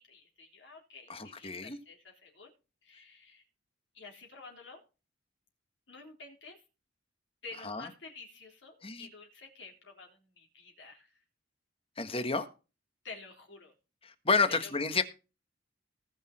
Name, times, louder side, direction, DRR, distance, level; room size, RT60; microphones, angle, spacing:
voice 1, 0.0-2.5 2.8-3.4 3.9-4.8 5.9-6.6 7.4-11.1 13.0-13.7 14.5-14.7 15.0-15.1, left 4 dB, 70° left, 3.8 m, -50 dB
voice 2, 1.1-1.8 7.6-7.9 8.8-9.1 12.0-12.5 14.0-15.0, left 4 dB, 30° left, 1.5 m, -30 dB
19.0 x 6.5 x 4.3 m
head